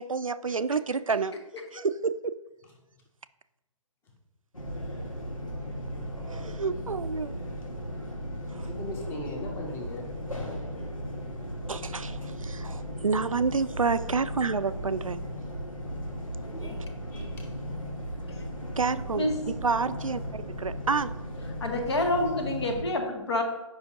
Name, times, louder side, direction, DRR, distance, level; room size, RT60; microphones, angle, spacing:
voice 1, 0.0-1.3 1.7-2.3 6.3-7.3 8.5-8.7 11.7-15.2 18.8-19.3 19.6-21.1, right 4 dB, 80° right, 13 dB, 0.4 m, -29 dB
sound 1, 4.5-22.8, equal, 85° left, 1.6 m, -36 dB
voice 2, 8.7-11.2 13.8-14.0 16.4-16.8 17.1-17.4, left 1 dB, 15° left, 0 dB, 1.2 m, -40 dB
voice 3, 21.6-23.4, left 2 dB, 55° left, 3 dB, 1.6 m, -28 dB
9.4 x 5.6 x 2.8 m, 0.99 s
figure-of-eight pair, 135°, 17 cm